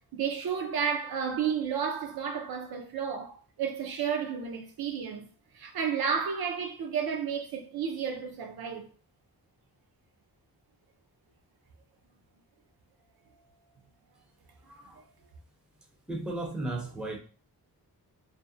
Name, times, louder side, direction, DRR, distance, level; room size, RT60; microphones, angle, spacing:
voice 1, 0.1-5.3 5.5-8.9, right 7 dB, 70° right, 0.5 m, -32 dB
voice 2, 14.6-15.0 16.1-17.2, right 2 dB, ahead, 0.4 m, -35 dB
2.5 x 2.0 x 2.5 m
wide cardioid pair, 130°, 38 cm